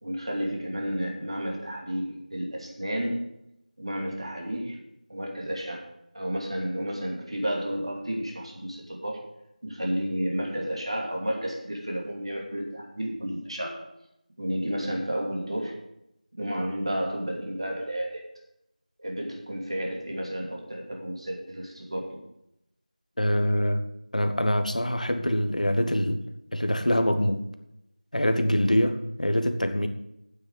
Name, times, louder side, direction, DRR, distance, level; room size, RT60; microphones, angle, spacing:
voice 1, 0.0-3.2 3.8-4.8 5.1-5.9 6.1-9.2 9.6-13.8 14.4-15.8 16.4-18.3 19.0-22.2, equal, 40° right, 0 dB, 2.6 m, -31 dB
voice 2, 23.2-23.9 24.1-26.2 26.5-27.5 28.1-29.9, equal, 60° left, 8 dB, 1.3 m, -24 dB
9.2 x 7.7 x 8.1 m, 0.84 s
figure-of-eight pair, 175°, 5 cm